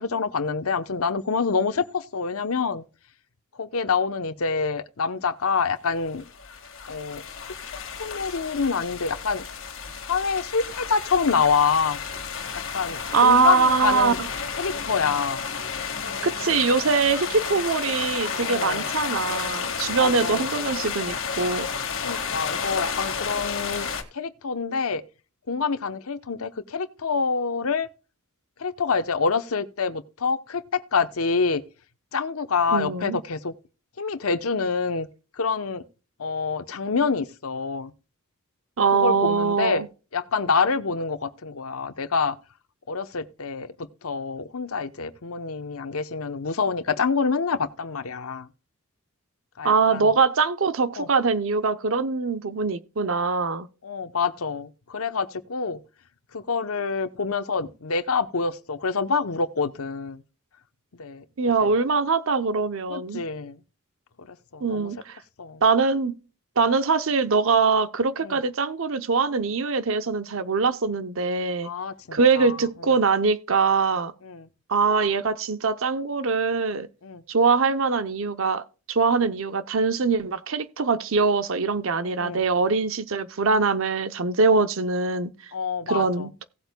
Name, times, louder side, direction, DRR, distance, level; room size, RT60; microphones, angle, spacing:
voice 1, 0.0-2.8 3.6-6.2 6.9-7.2 8.0-9.4 10.0-12.0 12.5-14.2 14.6-15.4 18.4-18.8 19.9-20.5 22.0-23.9 24.1-25.0 25.5-27.9 28.6-31.6 32.1-33.5 34.0-35.1 35.3-35.8 36.2-37.9 38.9-39.8 40.1-42.4 42.9-48.5 49.6-50.2 51.0-51.1 53.8-55.8 56.3-60.2 61.0-61.2 61.6-61.7 62.9-63.6 64.2-64.9 65.4-65.6 68.2-68.4 71.6-72.6 74.2-74.5 77.0-77.2 82.0-82.5 84.5-84.7 85.5-86.3, left 5 dB, 75° left, 0.8 m, -26 dB
sound 1, 6.0-24.0, left 6 dB, 60° left, 1.8 m, -32 dB
voice 2, 13.1-14.3 16.2-21.7 32.7-33.2 38.8-39.9 49.6-53.7 61.4-63.2 64.6-65.2 65.6-66.1 66.6-71.7 72.1-74.1 74.7-76.9 77.3-85.5 85.9-86.4, right 4 dB, 65° right, 0.7 m, -23 dB
17.5 x 8.1 x 2.2 m
head